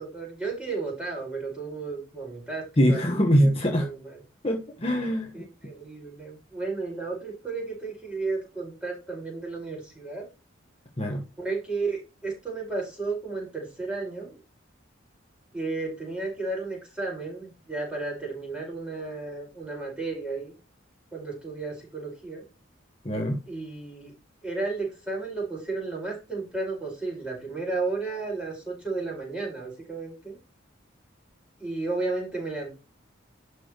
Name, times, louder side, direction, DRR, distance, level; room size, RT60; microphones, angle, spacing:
voice 1, 0.0-3.0 3.4-4.2 5.3-10.2 11.4-14.4 15.5-20.6 21.1-22.4 23.5-24.1 24.4-30.4 31.6-32.7, right 3 dB, 5° right, -3 dB, 4.9 m, -33 dB
voice 2, 2.8-3.9 4.4-5.4 11.0-11.2 23.0-23.4, equal, 30° left, 1 dB, 1.2 m, -23 dB
11.5 x 4.8 x 3.1 m, 0.31 s
head